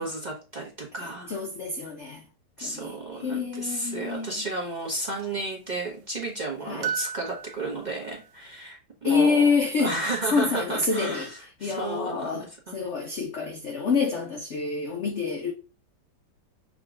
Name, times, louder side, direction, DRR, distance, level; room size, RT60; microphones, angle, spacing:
voice 1, 0.0-1.3 2.6-9.5 9.8-12.7, right 2 dB, 30° right, 0.9 m, -33 dB
voice 2, 1.0-2.2 2.6-4.5 6.7-6.9 9.0-15.5, left 4 dB, 70° left, 0.6 m, -27 dB
sound 1, 3.5-3.6 6.8-8.3, right 8 dB, 70° right, 1.3 m, -34 dB
6.0 x 2.9 x 2.4 m
omnidirectional pair, 2.1 m